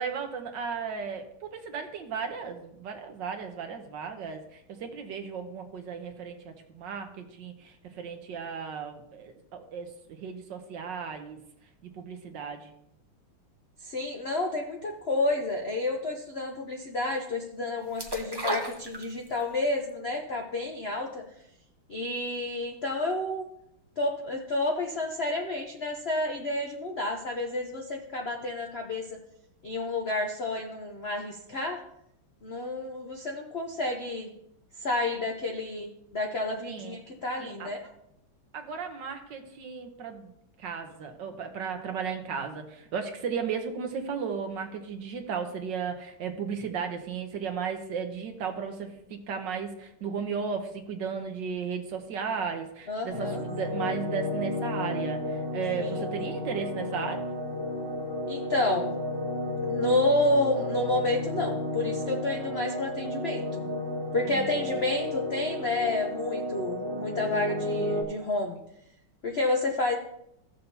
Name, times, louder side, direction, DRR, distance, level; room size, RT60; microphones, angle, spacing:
voice 1, 0.0-11.4 11.8-12.7 36.7-37.0 37.4-37.7 38.5-40.3 40.6-57.2 64.2-64.8, right 6 dB, 65° right, 5 dB, 1.5 m, -35 dB
voice 2, 13.8-21.2 21.9-23.5 24.0-29.2 29.6-31.8 32.4-34.3 34.8-37.8 52.9-53.4 55.7-56.0 58.3-58.9 59.7-63.7 64.1-68.6 69.2-70.0, left 2 dB, 65° left, 2 dB, 0.6 m, -30 dB
sound 1, 18.0-19.5 19.9-20.0, right 1 dB, 20° right, 0.6 m, -33 dB
sound 2, 53.1-68.0, left 1 dB, 45° right, 2.6 m, -32 dB
15.5 x 6.7 x 2.8 m, 0.77 s
omnidirectional pair, 2.3 m